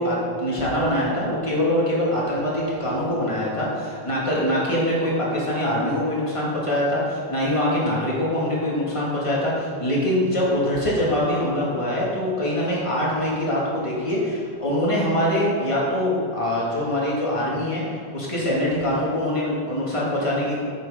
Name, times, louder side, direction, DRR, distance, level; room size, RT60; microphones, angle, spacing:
voice 1, 0.0-20.6, left 1 dB, 30° left, -6 dB, 2.2 m, -23 dB
9.2 x 6.9 x 5.0 m, 2.3 s
omnidirectional pair, 1.0 m